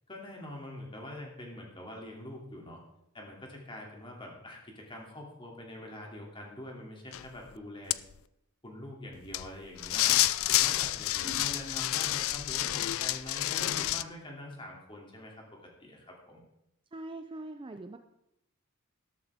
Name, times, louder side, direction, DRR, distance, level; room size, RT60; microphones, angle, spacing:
voice 1, 0.1-2.8 3.1-8.0 8.6-10.1 10.5-15.4 15.8-16.4, left 1 dB, 25° left, -1 dB, 2.8 m, -44 dB
sound 1, 7.1-7.2 7.9-8.0 9.3-9.5 9.8-14.0, left 15 dB, 65° left, 0.4 m, -29 dB
voice 2, 11.2-11.9 16.9-18.0, right 2 dB, 25° right, 8 dB, 0.5 m, -43 dB
13.0 x 13.0 x 3.6 m, 0.84 s
head